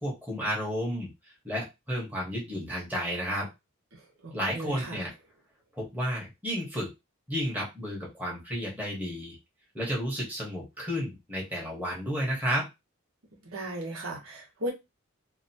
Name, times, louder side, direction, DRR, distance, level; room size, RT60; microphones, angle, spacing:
voice 1, 0.0-3.5 4.3-5.1 5.7-6.9 7.3-9.4 9.7-12.7, equal, 10° right, 1.1 m, -32 dB
voice 2, 3.9-5.0 13.4-14.7, right 1 dB, 75° right, 1.2 m, -37 dB
2.8 x 2.4 x 2.7 m
head